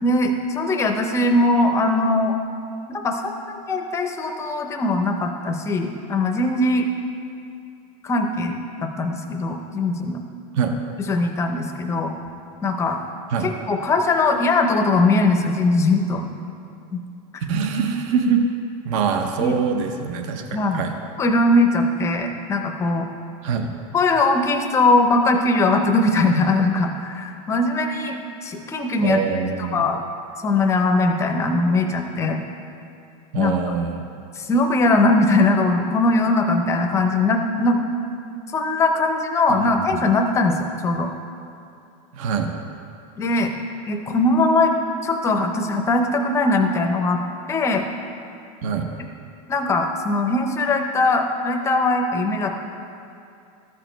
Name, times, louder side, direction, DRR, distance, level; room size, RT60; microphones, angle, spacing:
voice 1, 0.0-2.4 2.9-6.9 8.0-10.2 11.1-12.1 12.6-13.0 13.4-16.3 16.9-17.0 17.3-17.4 19.4-19.6 20.5-20.9 21.2-23.1 23.9-29.2 29.6-30.0 30.4-32.4 33.3-33.5 34.4-37.8 38.5-41.1 43.2-43.5 43.9-44.7 45.0-47.2 47.5-47.9 49.5-52.5, left 2 dB, 15° left, 4 dB, 0.5 m, -20 dB
voice 2, 17.5-18.5 18.8-20.4 20.7-20.9 23.4-23.7 29.0-29.8 33.3-34.0 39.5-40.1 42.1-42.5 48.6-48.9, right 6 dB, 60° right, 5 dB, 0.7 m, -24 dB
13.5 x 5.0 x 4.4 m, 2.5 s
supercardioid pair, 165°, 18 cm